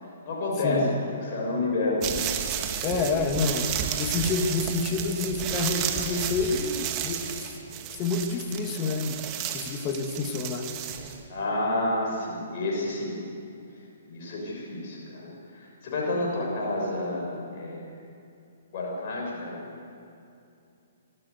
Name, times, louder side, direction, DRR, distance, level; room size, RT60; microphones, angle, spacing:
voice 1, 0.2-2.3 3.0-3.1 11.3-13.1 14.1-17.9 18.7-19.6, left 2 dB, 50° left, -2 dB, 6.7 m, -29 dB
sound 1, 2.0-11.2, right 9 dB, 30° right, 2.1 m, -32 dB
voice 2, 2.8-3.7 4.0-7.2 7.9-9.2 9.5-10.7, left 4 dB, 30° left, 4 dB, 2.4 m, -28 dB
25.5 x 15.0 x 8.3 m, 2.6 s
hypercardioid pair, 135°, 0 cm